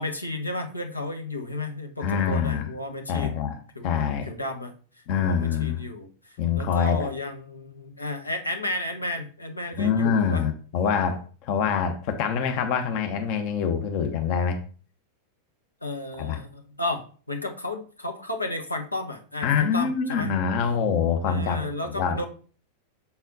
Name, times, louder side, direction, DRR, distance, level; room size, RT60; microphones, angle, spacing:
voice 1, 0.0-3.4 3.7-3.9 4.2-4.7 5.2-10.5 15.8-20.3 21.2-22.2, left 2 dB, 85° left, 1.1 m, -33 dB
voice 2, 2.0-2.7 3.1-3.6 3.8-4.3 5.1-5.8 6.4-7.1 9.8-14.6 16.2-16.4 19.4-22.2, left 6 dB, 45° left, 0.9 m, -25 dB
7.0 x 4.2 x 4.0 m
figure-of-eight pair, 90°, 0 cm